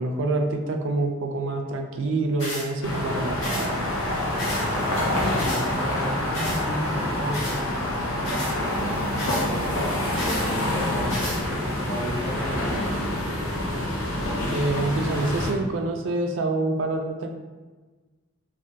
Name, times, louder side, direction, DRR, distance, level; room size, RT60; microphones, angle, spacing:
voice 1, 0.0-3.9 14.5-17.3, right 2 dB, 60° right, 3 dB, 0.3 m, -26 dB
sound 1, 2.4-2.7 3.4-3.7 4.4-4.7 5.4-5.6 6.3-6.6 7.3-7.6 8.2-8.5 9.2-9.5 10.2-10.4 11.1-11.4, left 1 dB, 60° left, 1.3 m, -33 dB
sound 2, 2.8-15.5, left 1 dB, 90° left, 0.6 m, -27 dB
voice 2, 4.4-7.8 8.2-9.8 10.2-11.3 11.9-13.0, equal, 35° left, -10 dB, 1.2 m, -34 dB
3.2 x 2.2 x 2.7 m, 1.3 s
head